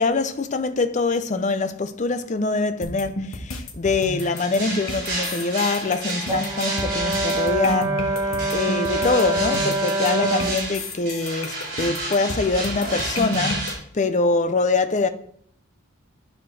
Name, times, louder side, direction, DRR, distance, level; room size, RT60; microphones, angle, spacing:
voice 1, 0.0-13.7 13.9-15.1, left 3 dB, 35° left, 0.5 m, -24 dB
sound 1, 2.8-13.7, left 1 dB, 80° left, 1.3 m, -32 dB
sound 2, 4.2-7.7 8.4-13.7, right 2 dB, 50° right, 3.8 m, -31 dB
Brass instrument, 6.3-10.6, right 2 dB, 20° right, 0.8 m, -25 dB
10.0 x 4.4 x 4.7 m
head